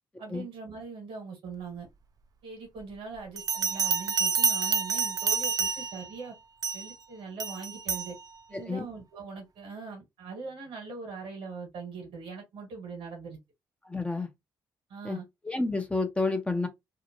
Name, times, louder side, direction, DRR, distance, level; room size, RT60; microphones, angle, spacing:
voice 1, 0.2-1.9 2.4-6.3 6.7-8.1 8.5-13.4 14.9-15.2, right 4 dB, 75° right, 1.4 m, -41 dB
Bell, 3.4-6.1 6.6-6.9 7.4-8.1, right 6 dB, 45° right, 0.4 m, -28 dB
voice 2, 8.5-8.9 13.8-14.3 15.0-15.2 15.4-16.7, left 3 dB, 15° left, 0.6 m, -30 dB
2.7 x 2.1 x 2.8 m
supercardioid pair, 50°, 9 cm